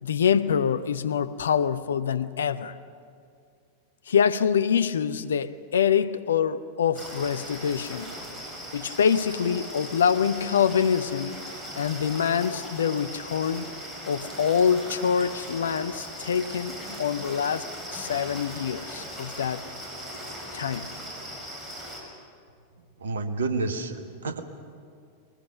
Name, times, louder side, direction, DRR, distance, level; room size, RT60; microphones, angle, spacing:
voice 1, 0.0-2.8 4.1-8.1 8.7-11.4 11.8-13.7 14.0-16.7 17.0-17.6 17.9-19.6 20.5-20.9, left 7 dB, 65° left, 0.7 m, -25 dB
sound 1, 7.0-22.0, equal, 20° right, 5.9 m, -39 dB
voice 2, 23.0-24.4, right 3 dB, 65° right, 1.4 m, -29 dB
22.0 x 20.5 x 6.7 m
figure-of-eight pair, 90°, 0 cm